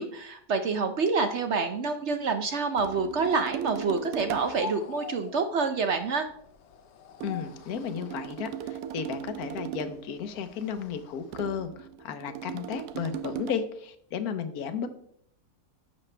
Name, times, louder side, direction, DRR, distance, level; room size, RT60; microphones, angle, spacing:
voice 1, 0.0-6.3, right 4 dB, 60° right, 7 dB, 0.8 m, -27 dB
sound 1, 2.8-4.8 7.2-10.1 11.3-13.5, right 10 dB, 85° right, 1.1 m, -38 dB
sound 2, 4.4-11.3, left 5 dB, 55° left, 0.9 m, -46 dB
voice 2, 7.2-11.7 12.0-14.9, left 7 dB, 75° left, 10 dB, 1.3 m, -33 dB
10.5 x 7.3 x 3.3 m, 0.67 s
omnidirectional pair, 1.7 m